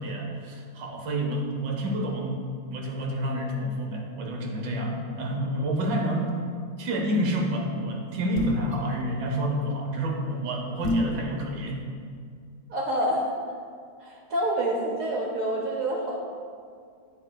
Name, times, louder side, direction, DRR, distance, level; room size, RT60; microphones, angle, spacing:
voice 1, 0.0-2.4 2.7-6.3 6.8-11.8, right 1 dB, 85° right, 0 dB, 1.5 m, -29 dB
sound 1, 8.3-8.7 10.8-11.2, left 1 dB, 40° left, 0.8 m, -26 dB
voice 2, 12.7-13.3 14.0-16.2, right 1 dB, 60° right, -1 dB, 0.9 m, -27 dB
8.3 x 5.2 x 2.2 m, 2.2 s
omnidirectional pair, 1.8 m